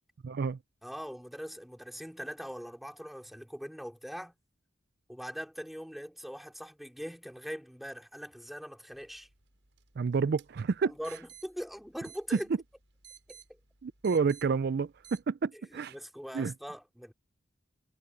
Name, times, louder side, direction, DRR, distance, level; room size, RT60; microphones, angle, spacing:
voice 1, 0.2-0.6 10.0-10.9 13.8-15.9 16.3-16.5, right 5 dB, 55° right, 0.4 m, -29 dB
voice 2, 0.8-4.3 5.1-9.3 10.8-12.5 13.5-13.6 15.7-17.1, equal, ahead, 2.7 m, -42 dB
sound 1, 8.9-15.2, right 9 dB, 90° right, 5.8 m, -57 dB
head